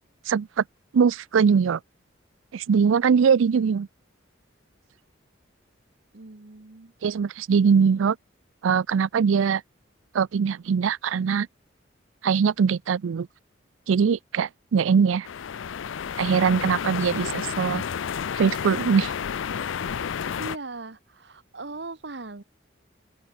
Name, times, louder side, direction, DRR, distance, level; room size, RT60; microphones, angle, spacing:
voice 1, 0.3-0.6 0.9-1.8 2.5-3.9 7.0-8.2 8.6-9.6 10.1-11.5 12.2-13.3 13.9-15.3 16.2-17.8 18.3-19.1, right 6 dB, 85° right, 0.4 m, -21 dB
voice 2, 6.1-6.9 17.1-17.4 20.3-22.4, right 3 dB, 60° right, 1.1 m, -39 dB
sound 1, 15.2-20.6, left 7 dB, 85° left, 0.5 m, -31 dB
open air
head